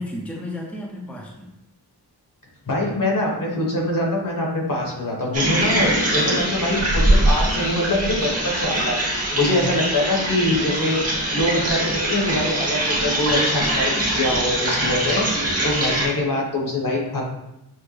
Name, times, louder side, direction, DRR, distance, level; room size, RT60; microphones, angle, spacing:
voice 1, 0.0-1.5 9.5-9.7 15.8-16.2, left 1 dB, 5° left, -2 dB, 0.6 m, -33 dB
voice 2, 2.6-11.0 11.3-15.2 15.6-17.2, left 1 dB, 55° left, -2 dB, 1.3 m, -24 dB
sound 1, 5.3-16.1, right 1 dB, 35° right, 1.2 m, -22 dB
6.2 x 2.1 x 3.2 m, 0.87 s
wide cardioid pair, 90°, 40 cm